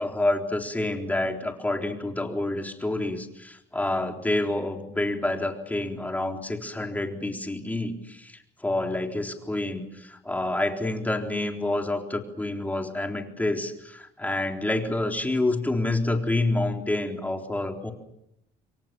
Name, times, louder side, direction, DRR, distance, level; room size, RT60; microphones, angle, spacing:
voice 1, 0.0-17.9, left 2 dB, 10° left, 3 dB, 3.8 m, -28 dB
28.5 x 23.0 x 6.9 m, 0.81 s
cardioid pair, 110°, 17 cm